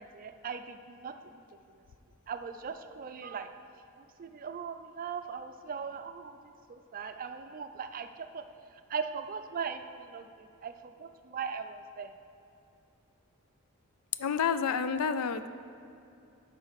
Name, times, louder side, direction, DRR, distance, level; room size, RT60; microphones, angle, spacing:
voice 1, 0.0-1.4 2.3-3.5 4.0-8.4 8.9-12.1, right 6 dB, 40° right, 9 dB, 0.4 m, -39 dB
voice 2, 14.2-15.5, left 6 dB, 75° left, 11 dB, 0.4 m, -29 dB
7.9 x 5.4 x 5.7 m, 2.7 s
head